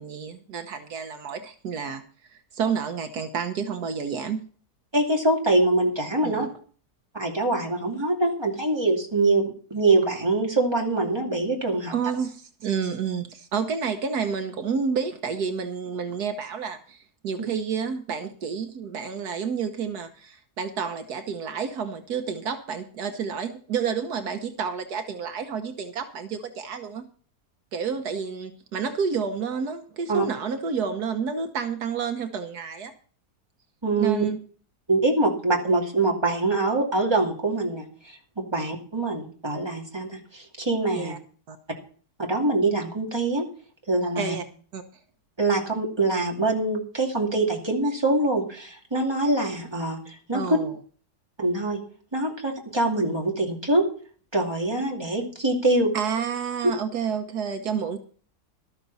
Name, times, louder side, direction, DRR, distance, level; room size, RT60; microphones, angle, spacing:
voice 1, 0.0-2.0 2.3-4.4 6.2-6.5 11.9-27.0 27.7-32.9 34.0-34.4 40.9-41.2 41.5-41.6 44.2-44.4 44.7-44.8 50.3-50.7 55.9-58.0, right 6 dB, 75° right, 7 dB, 1.6 m, -30 dB
voice 2, 4.9-6.5 7.1-11.9 30.1-30.2 33.8-34.2 34.9-41.1 42.2-43.4 43.9-44.4 45.4-50.6 51.4-51.8 52.1-53.8 54.3-55.9, right 2 dB, 15° right, 0 dB, 2.6 m, -24 dB
13.0 x 13.0 x 4.1 m, 0.43 s
omnidirectional pair, 1.7 m